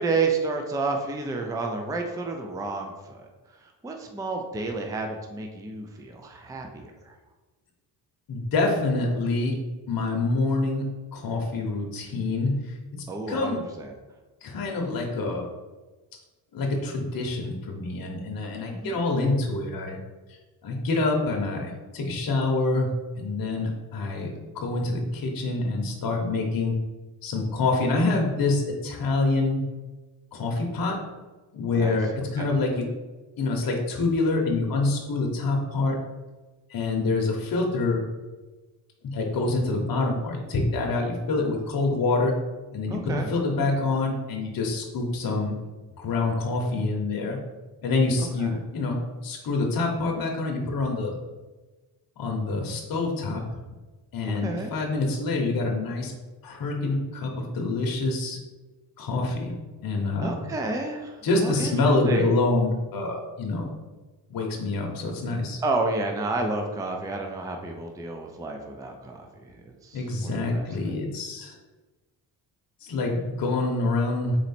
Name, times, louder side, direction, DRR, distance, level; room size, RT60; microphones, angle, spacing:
voice 1, 0.0-3.3 3.5-7.1 13.1-13.9 18.7-19.0 31.7-32.0 32.4-32.5 42.9-43.3 48.2-48.6 54.4-54.7 60.2-62.3 65.6-71.0, right 3 dB, 10° right, 3 dB, 0.4 m, -31 dB
voice 2, 8.3-9.6 9.9-12.5 12.9-13.6 14.4-15.4 16.5-20.0 20.6-26.7 27.2-29.6 30.3-31.0 31.5-32.9 33.4-36.0 36.7-38.0 39.0-42.3 42.7-45.6 46.0-47.4 47.8-51.1 52.2-53.4 54.1-56.1 56.4-58.4 59.0-59.5 59.8-60.5 61.2-63.7 64.3-65.6 69.9-71.5 72.8-74.4, left 3 dB, 50° left, 0 dB, 0.9 m, -26 dB
4.0 x 3.0 x 4.2 m, 1.2 s
cardioid pair, 95°, 45 cm